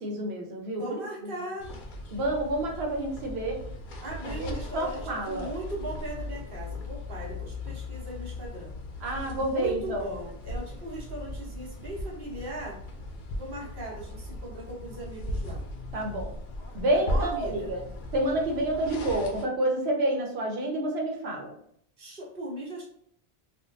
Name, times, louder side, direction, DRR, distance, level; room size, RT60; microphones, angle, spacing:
voice 1, 0.0-0.8 2.1-3.6 4.2-5.5 9.0-10.1 15.9-16.3 16.7-17.8 18.1-21.5, right 1 dB, 85° right, 1 dB, 1.0 m, -29 dB
voice 2, 0.8-1.7 4.0-8.8 9.4-12.8 13.4-15.6 16.9-17.7 22.0-22.9, right 1 dB, 60° right, -3 dB, 1.1 m, -38 dB
sound 1, 1.6-19.5, left 1 dB, 60° left, 0.6 m, -38 dB
3.5 x 2.2 x 2.5 m, 0.68 s
omnidirectional pair, 1.0 m